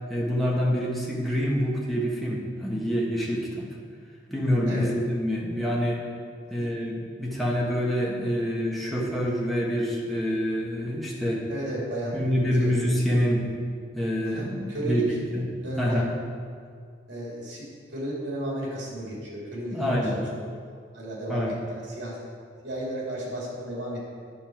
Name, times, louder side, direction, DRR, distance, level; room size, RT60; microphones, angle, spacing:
voice 1, 0.1-3.7 4.3-6.0 6.5-11.4 12.1-13.4 13.9-15.0 15.3-15.5 15.8-16.1 19.7-20.2 21.3-21.5, equal, ahead, -5 dB, 1.3 m, -26 dB
voice 2, 11.5-12.2 12.6-12.7 13.1-13.2 14.2-15.0 15.6-16.0 17.1-20.3 20.9-22.2 22.6-24.0, right 1 dB, 70° right, -4 dB, 2.4 m, -34 dB
11.0 x 5.5 x 4.5 m, 2.1 s
head